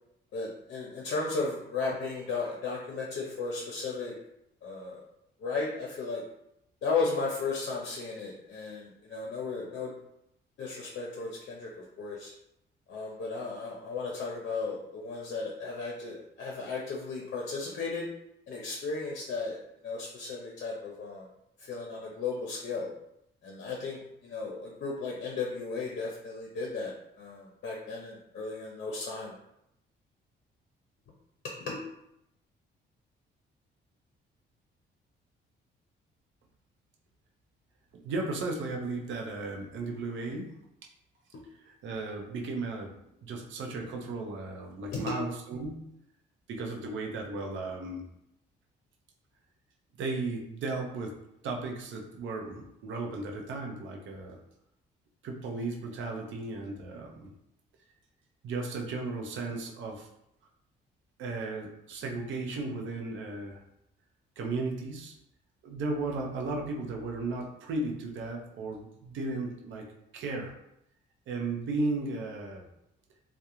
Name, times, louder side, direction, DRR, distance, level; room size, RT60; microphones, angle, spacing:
voice 1, 0.3-4.1 4.6-5.0 5.4-6.2 6.8-9.9 10.6-11.7 12.0-12.3 12.9-18.1 18.5-19.6 19.8-21.3 21.7-22.9 23.4-26.9 27.2-29.3 31.7-31.8 44.9-45.1, left 4 dB, 60° left, -2 dB, 0.6 m, -35 dB
voice 2, 37.9-40.6 41.6-42.9 43.2-45.9 46.5-48.1 50.0-51.2 51.4-54.4 55.2-57.3 58.4-60.1 61.2-63.6 64.4-65.1 65.6-69.9 70.1-70.5 71.3-72.7, right 3 dB, 75° right, 1 dB, 0.6 m, -35 dB
2.3 x 2.1 x 2.9 m, 0.80 s
cardioid pair, 90°, 20 cm